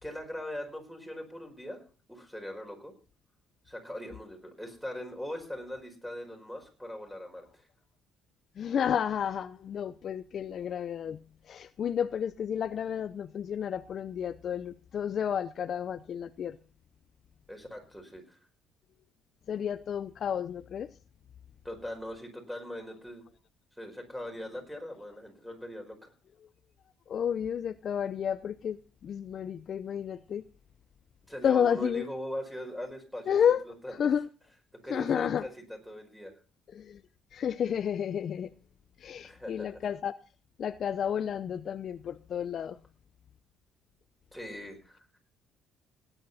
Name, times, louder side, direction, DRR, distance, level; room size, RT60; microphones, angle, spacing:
voice 1, 0.0-1.8 2.1-2.9 3.7-7.7 17.5-18.4 21.6-23.2 23.8-26.1 31.3-33.4 33.7-34.0 34.8-36.3 39.2-39.9 44.3-45.2, equal, ahead, 4.8 m, -40 dB
voice 2, 8.6-11.2 11.5-16.6 19.5-20.9 27.1-30.4 31.4-32.1 33.3-33.6 34.0-34.3 34.9-35.5 36.7-37.0 37.3-38.5 39.0-40.2 40.6-42.8, left 8 dB, 50° left, 0.6 m, -31 dB
17.5 x 10.0 x 4.1 m
cardioid pair, 120°, 0 cm